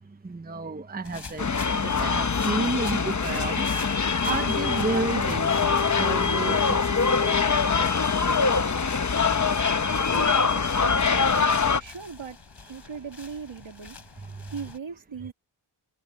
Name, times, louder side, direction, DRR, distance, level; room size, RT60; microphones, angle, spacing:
voice 1, 0.2-3.6 4.2-5.5 6.0-7.4, right 2 dB, 20° right, 0.8 m, -31 dB
sound 1, 1.0-14.8, left 4 dB, 55° left, 4.9 m, -46 dB
sound 2, 1.4-11.8, left 5 dB, 35° left, 0.9 m, -23 dB
voice 2, 9.7-12.4 12.7-14.0 14.5-15.3, right 6 dB, 65° right, 2.3 m, -39 dB
wide cardioid pair, 110°, 49 cm